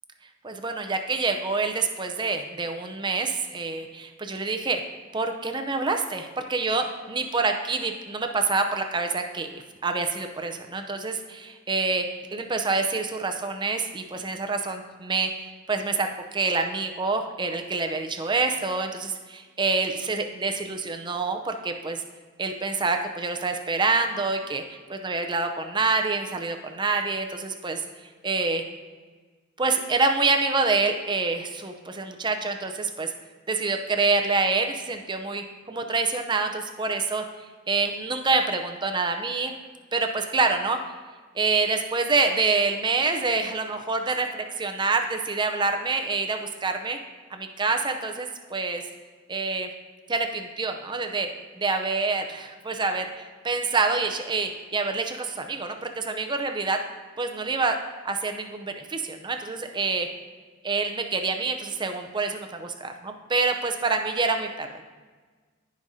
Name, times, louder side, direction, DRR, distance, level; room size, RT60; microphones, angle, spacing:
voice 1, 0.4-4.8 5.1-22.0 22.4-24.6 24.9-27.8 28.2-28.6 29.6-33.1 33.5-37.3 37.7-39.5 39.9-40.8 41.3-47.0 47.3-48.8 49.3-49.7 50.1-51.3 51.6-56.8 57.2-57.8 58.0-60.1 60.6-64.8, right 3 dB, 20° right, 5 dB, 0.6 m, -27 dB
15.0 x 5.2 x 2.7 m, 1.4 s
head